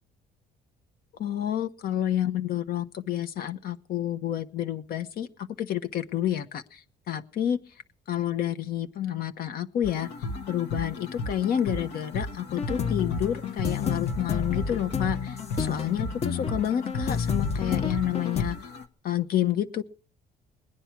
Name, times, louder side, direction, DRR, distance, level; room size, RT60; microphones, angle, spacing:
voice 1, 1.2-7.7 8.1-10.1 10.5-18.6 19.0-19.8, left 11 dB, 60° left, 9 dB, 1.2 m, -29 dB
sound 1, 9.8-18.8, left 2 dB, 80° left, 1.6 m, -35 dB
sound 2, 12.5-18.4, left 6 dB, 40° left, 1.0 m, -30 dB
20.5 x 10.0 x 6.1 m, 0.40 s
cardioid pair, 110°, 17 cm